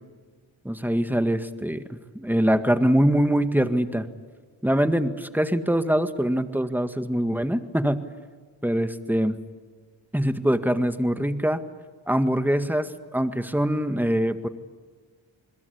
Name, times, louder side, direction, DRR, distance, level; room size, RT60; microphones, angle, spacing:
voice 1, 0.7-1.8 2.2-4.1 4.6-8.0 8.6-9.4 10.1-11.6 12.1-14.5, equal, 5° right, 9 dB, 1.9 m, -23 dB
27.5 x 21.5 x 8.5 m, 1.5 s
cardioid pair, 45°, 48 cm